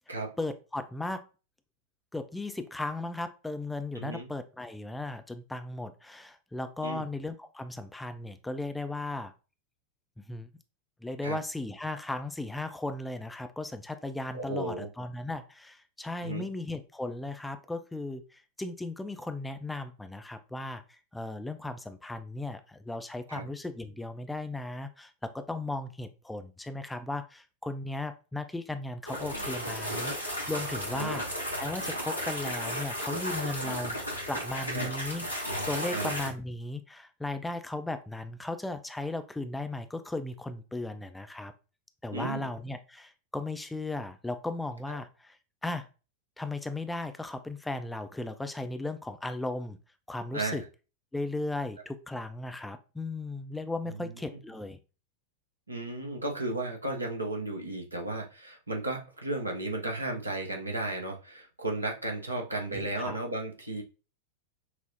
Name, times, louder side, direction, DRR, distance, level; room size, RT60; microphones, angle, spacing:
voice 1, 0.4-1.2 2.1-9.3 10.2-10.5 11.0-31.3 31.6-34.0 34.3-35.3 35.7-41.5 42.0-45.4 45.6-45.9 46.4-49.8 50.1-50.6 51.1-54.8 62.7-63.2, left 2 dB, 5° left, 0.4 m, -36 dB
voice 2, 3.9-4.3 6.8-7.1 11.2-11.4 14.3-14.9 16.2-16.5 23.3-23.4 30.9-31.1 34.7-34.9 35.9-36.1 42.1-42.5 44.9-45.0 50.3-50.6 53.9-54.1 55.7-63.8, right 2 dB, 80° right, 0.8 m, -34 dB
sound 1, 29.0-36.3, equal, 90° left, 1.0 m, -34 dB
5.9 x 2.0 x 2.7 m
figure-of-eight pair, 90°, 0 cm